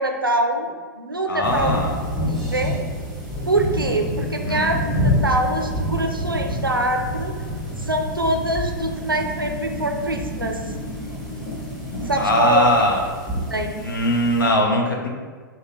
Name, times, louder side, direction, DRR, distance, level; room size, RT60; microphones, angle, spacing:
voice 1, 0.0-1.8 2.5-2.7 3.5-7.3 7.8-10.6 12.0-12.7 13.5-13.8, right 1 dB, 85° right, 4 dB, 0.5 m, -24 dB
voice 2, 1.3-2.0 4.5-4.7 12.2-13.0 13.8-15.1, left 1 dB, 70° left, 0 dB, 0.8 m, -20 dB
sound 1, 1.4-14.5, equal, ahead, 0.9 m, -28 dB
sound 2, 7.3-12.5, left 1 dB, 30° left, 1.5 m, -34 dB
5.4 x 2.2 x 3.7 m, 1.5 s
figure-of-eight pair, 105°, 11 cm